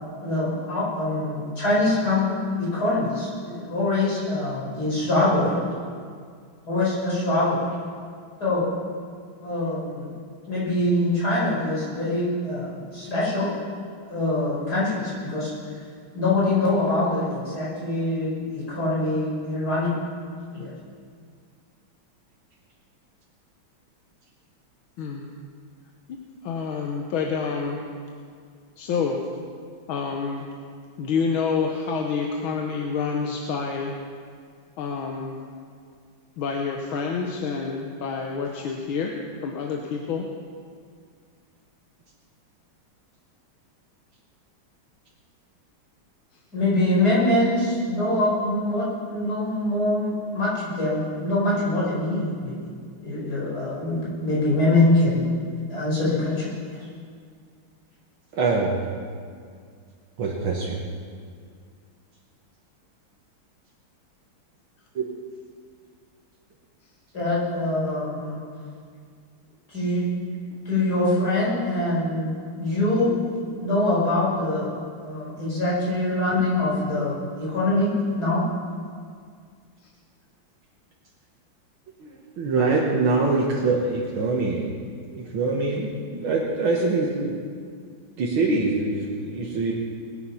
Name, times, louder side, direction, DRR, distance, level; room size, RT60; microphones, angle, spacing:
voice 1, 0.2-2.3 2.6-5.6 6.7-7.6 8.4-8.6 9.4-10.1 10.5-13.5 14.1-15.5 16.1-19.9 20.5-20.7 46.5-52.6 53.0-55.3 55.7-56.9 67.1-68.4 69.7-70.1 70.7-73.1 73.6-74.7 75.0-77.9 78.2-78.4, left 2 dB, 50° left, -8 dB, 5.7 m, -24 dB
voice 2, 26.4-27.8 28.8-29.2 29.9-30.5 31.0-33.9 34.8-35.4 36.4-39.2 39.4-40.3 79.8-79.9, left 5 dB, 80° left, 2 dB, 1.8 m, -28 dB
voice 3, 58.3-58.8 60.2-60.8 65.0-65.1 82.0-84.7 85.1-87.4 88.2-89.7, right 3 dB, 75° right, -3 dB, 2.2 m, -24 dB
20.5 x 9.2 x 5.7 m, 2.1 s
omnidirectional pair, 2.3 m